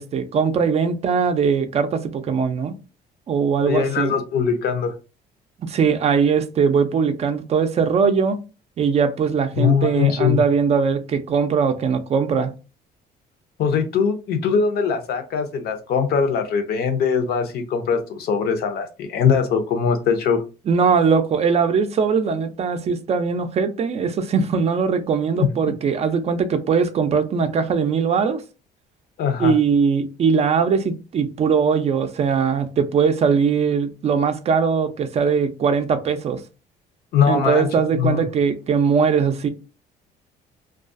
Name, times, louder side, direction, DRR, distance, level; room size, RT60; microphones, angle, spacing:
voice 1, 0.0-2.7 3.3-4.1 5.6-8.4 8.8-12.5 20.7-28.4 29.4-36.4 37.3-39.5, right 6 dB, 40° right, 0.4 m, -20 dB
voice 2, 3.7-4.9 9.6-10.4 13.6-20.4 25.4-25.5 29.2-29.5 37.1-37.7 38.0-38.2, left 6 dB, 65° left, 0.6 m, -21 dB
2.3 x 2.2 x 2.5 m
cardioid pair, 110°, 17 cm